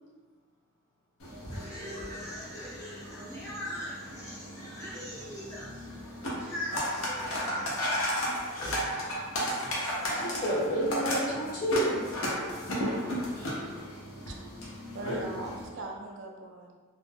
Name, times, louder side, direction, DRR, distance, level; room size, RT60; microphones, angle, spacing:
sound 1, 1.2-15.7, equal, 80° left, 0.6 m, -34 dB
voice 1, 1.5-7.7 13.3-13.7, left 1 dB, 15° left, -10 dB, 0.4 m, -41 dB
voice 2, 8.5-8.8 10.0-12.0, equal, 40° left, -7 dB, 0.8 m, -30 dB
voice 3, 14.9-16.7, right 2 dB, 60° right, 0 dB, 0.4 m, -40 dB
2.4 x 2.1 x 3.3 m, 1.4 s
head